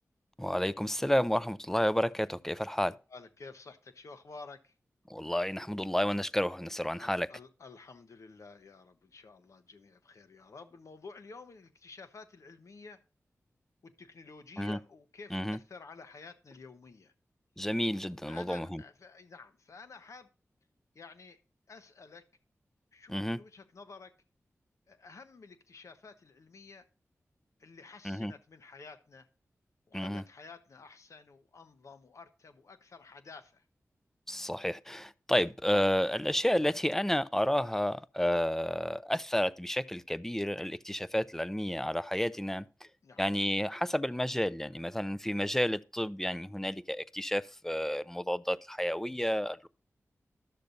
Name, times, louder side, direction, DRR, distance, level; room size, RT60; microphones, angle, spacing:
voice 1, 0.4-2.9 5.1-7.3 14.6-14.8 15.3-15.6 17.6-18.8 23.1-23.4 28.0-28.3 29.9-30.2 34.3-42.6 43.2-49.7, equal, 5° left, 0.4 m, -31 dB
voice 2, 3.1-4.7 7.0-13.0 13.8-17.1 18.2-20.3 20.9-21.4 21.7-22.3 22.9-24.1 24.9-26.9 27.6-29.3 29.9-33.6 43.0-43.2, left 4 dB, 70° left, 0.9 m, -51 dB
12.0 x 6.7 x 2.5 m
wide cardioid pair, 65°, 5 cm